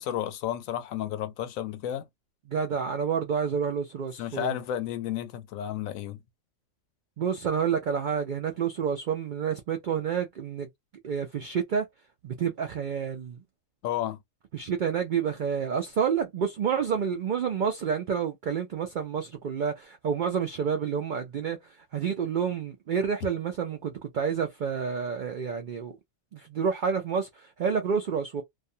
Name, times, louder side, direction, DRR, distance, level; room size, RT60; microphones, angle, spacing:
voice 1, 0.0-2.1 4.2-6.2 13.8-14.2, left 11 dB, 85° left, 1.0 m, -32 dB
voice 2, 2.5-4.6 7.2-10.7 11.0-11.8 12.2-13.4 14.5-21.6 21.9-26.0 26.3-28.4, right 7 dB, 75° right, 0.4 m, -29 dB
2.4 x 2.2 x 2.6 m
omnidirectional pair, 1.4 m